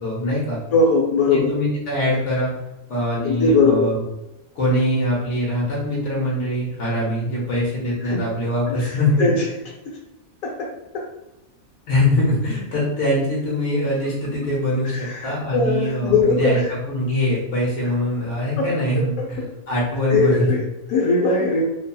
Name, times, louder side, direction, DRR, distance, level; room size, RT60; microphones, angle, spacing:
voice 1, 0.0-0.6 1.3-2.5 2.9-4.0 4.5-9.3 11.9-16.6 16.9-19.4 19.7-20.5, left 1 dB, 60° left, -4 dB, 1.1 m, -23 dB
voice 2, 0.7-1.5 3.2-3.9 8.0-8.2 8.7-9.5 9.9-10.0 10.4-10.7 14.8-16.7 18.6-18.7 19.0-19.5 20.1-21.6, left 3 dB, 80° left, -3 dB, 1.0 m, -20 dB
2.7 x 2.7 x 2.2 m, 0.91 s
omnidirectional pair, 1.5 m